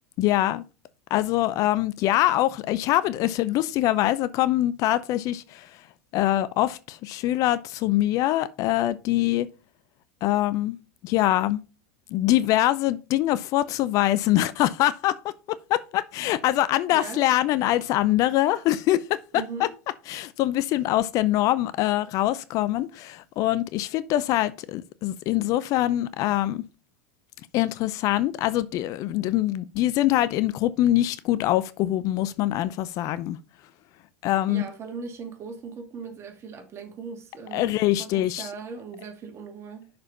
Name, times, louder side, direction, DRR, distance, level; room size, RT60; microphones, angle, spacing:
voice 1, 0.2-0.6 1.1-5.7 6.1-9.5 10.2-10.8 11.0-11.6 12.1-15.2 15.5-19.2 19.6-19.7 20.1-26.6 27.5-33.4 34.2-34.6 37.5-38.5, left 14 dB, 50° left, 0.6 m, -24 dB
voice 2, 16.9-17.2 19.3-19.7 34.5-39.9, right 5 dB, 35° right, 2.1 m, -39 dB
6.3 x 5.1 x 5.4 m
hypercardioid pair, 95°, 8 cm